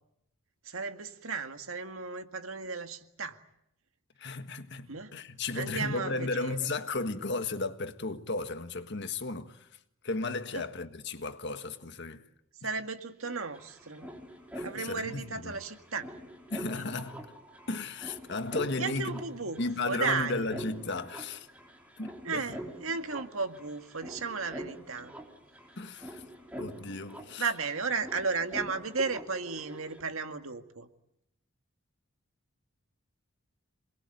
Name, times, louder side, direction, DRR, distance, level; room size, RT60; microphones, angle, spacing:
voice 1, 0.7-3.4 4.9-5.1 5.6-6.7 10.5-10.6 12.6-14.1 14.6-16.1 18.8-20.5 22.2-25.1 27.4-30.9, right 4 dB, 80° right, 2.1 m, -34 dB
voice 2, 4.2-9.7 10.0-12.3 14.5-15.6 16.5-17.4 17.7-19.2 19.6-21.5 22.0-22.4 25.8-26.2 26.6-27.5, left 3 dB, 55° left, 1.6 m, -34 dB
sound 1, 13.0-13.1 13.2-30.0, equal, 5° right, 3.6 m, -45 dB
27.5 x 21.0 x 9.2 m
head